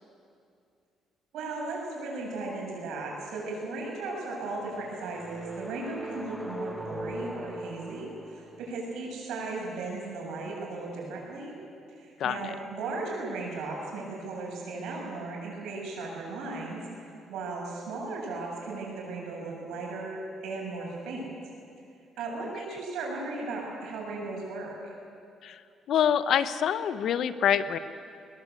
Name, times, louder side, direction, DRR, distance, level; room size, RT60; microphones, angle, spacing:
voice 1, 1.3-11.5 11.9-21.3 22.2-25.0, right 3 dB, 80° right, -1 dB, 7.8 m, -36 dB
sound 1, 4.5-8.8, equal, ahead, 1.6 m, -41 dB
voice 2, 12.2-12.5 25.4-25.6 25.9-27.8, left 9 dB, 60° left, 13 dB, 1.0 m, -26 dB
21.5 x 20.5 x 8.3 m, 2.5 s
cardioid pair, 130°, 0 cm